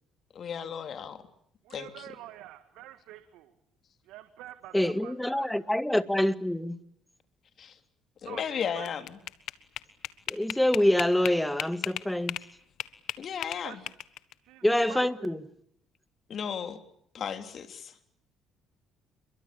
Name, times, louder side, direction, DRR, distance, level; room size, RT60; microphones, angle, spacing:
voice 1, 0.3-1.2 1.7-2.1 7.6-7.7 8.2-9.2 13.2-13.8 16.3-16.8 17.1-17.9, left 7 dB, 55° left, 3.3 m, -35 dB
voice 2, 1.6-3.5 4.0-5.6 8.2-8.9 13.6-13.9 14.4-15.1, right 14 dB, 85° right, 1.7 m, -47 dB
voice 3, 4.7-6.8 10.3-12.4 14.6-15.4, left 1 dB, 5° left, 1.9 m, -26 dB
sound 1, 8.6-12.5 12.8-14.3, left 13 dB, 75° left, 1.4 m, -35 dB
28.5 x 23.0 x 8.7 m
supercardioid pair, 75°, 0 cm